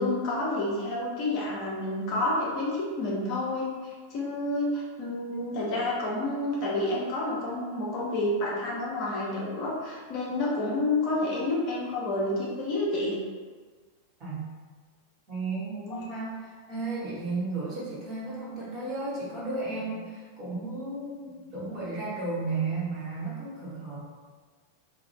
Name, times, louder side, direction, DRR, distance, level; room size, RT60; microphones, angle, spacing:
voice 1, 0.0-13.2 15.9-16.0, left 2 dB, 40° left, -5 dB, 0.6 m, -29 dB
voice 2, 15.3-24.0, right 3 dB, 30° right, -8 dB, 1.1 m, -34 dB
2.3 x 2.1 x 3.1 m, 1.5 s
figure-of-eight pair, 90°, 0 cm